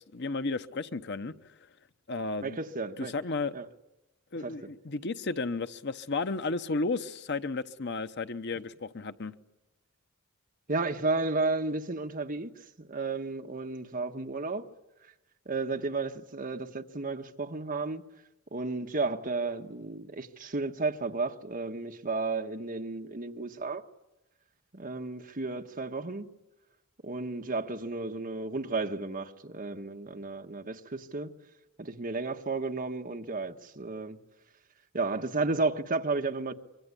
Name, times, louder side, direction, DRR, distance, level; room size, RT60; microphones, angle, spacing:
voice 1, 0.0-1.3 2.1-2.6 3.1-3.5 4.3-9.3, left 3 dB, 55° left, 0.9 m, -33 dB
voice 2, 2.4-3.1 3.5-3.7 4.4-4.5 10.7-12.5 12.8-14.7 15.0-15.1 15.4-18.0 18.5-23.9 24.7-26.3 27.0-31.3 31.8-34.2 34.9-36.5, right 3 dB, 40° right, 1.3 m, -33 dB
25.0 x 24.0 x 9.9 m
head